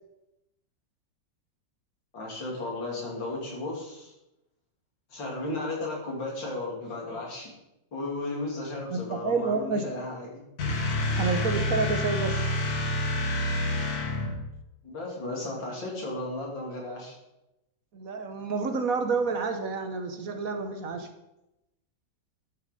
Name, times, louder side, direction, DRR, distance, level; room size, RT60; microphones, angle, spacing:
voice 1, 2.1-4.1 5.1-7.5 7.9-10.4 14.8-17.2, left 2 dB, 85° left, -2 dB, 3.6 m, -34 dB
voice 2, 8.9-9.9 11.2-12.6 17.9-21.1, right 4 dB, 55° right, 7 dB, 1.2 m, -29 dB
sound 1, 10.6-14.5, left 1 dB, 55° left, 1.8 m, -28 dB
12.0 x 6.8 x 5.2 m, 0.92 s
omnidirectional pair, 2.0 m